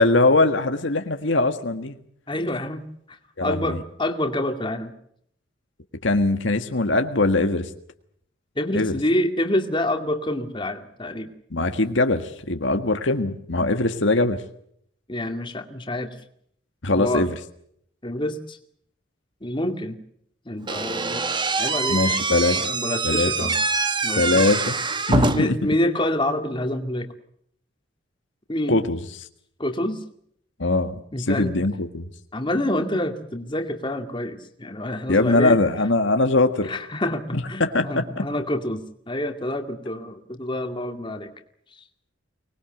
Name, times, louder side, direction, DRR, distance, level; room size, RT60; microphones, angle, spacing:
voice 1, 0.0-1.9 3.4-3.8 6.0-7.7 8.7-9.0 11.5-14.4 16.8-17.3 21.9-22.6 23.0-23.5 24.2-24.8 25.1-25.6 28.7-29.0 30.6-30.9 31.3-32.1 35.1-36.7 37.6-38.2, left 2 dB, 70° left, 7 dB, 1.6 m, -21 dB
voice 2, 2.3-2.8 3.1-4.9 8.6-11.3 15.1-16.1 16.9-17.3 18.0-18.6 19.4-20.0 20.5-21.2 21.6-22.3 22.5-23.5 24.0-24.5 25.3-27.1 28.5-28.8 29.6-30.0 31.1-31.5 32.3-35.6 36.7-41.3 41.7-41.8, left 1 dB, 25° left, 6 dB, 2.3 m, -27 dB
Slam / Squeak, 20.7-25.6, right 3 dB, 25° right, 1.3 m, -24 dB
24.5 x 20.0 x 7.9 m, 0.69 s
head